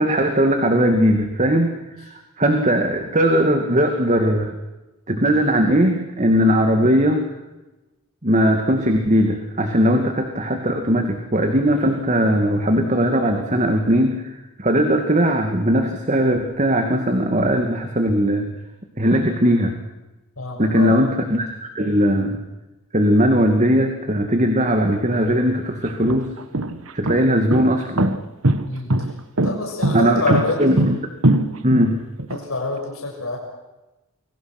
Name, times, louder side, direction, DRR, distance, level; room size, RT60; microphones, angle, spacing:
voice 1, 0.0-1.7 2.1-4.6 5.1-7.2 8.2-18.5 19.0-19.7 20.6-22.4 22.9-26.3 26.9-28.1 29.9-30.9 31.6-32.0, equal, 35° right, 5 dB, 2.4 m, -19 dB
voice 2, 20.4-21.0 28.7-28.9 29.4-30.8 32.3-33.4, left 3 dB, 75° left, 0 dB, 6.9 m, -26 dB
sound 1, 25.1-25.2 25.9-32.4, right 1 dB, 75° right, 1.6 m, -21 dB
30.0 x 23.0 x 6.1 m, 1.0 s
head